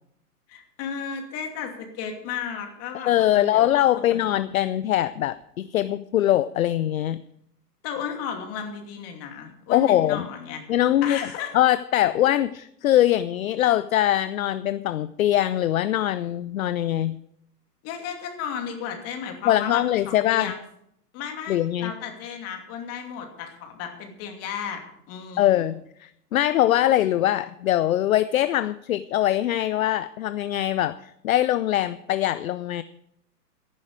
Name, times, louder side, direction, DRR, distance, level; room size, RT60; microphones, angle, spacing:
voice 1, 0.5-3.7 3.9-4.4 7.8-10.6 11.0-11.5 17.8-20.6 21.1-24.8 25.1-25.7, left 7 dB, 30° left, 4 dB, 2.7 m, -34 dB
voice 2, 2.9-7.2 9.7-10.3 10.7-11.2 11.5-17.2 19.4-20.5 21.5-21.9 25.4-32.8, left 13 dB, 60° left, 15 dB, 0.6 m, -22 dB
14.5 x 11.5 x 4.9 m, 0.74 s
hypercardioid pair, 125°, 48 cm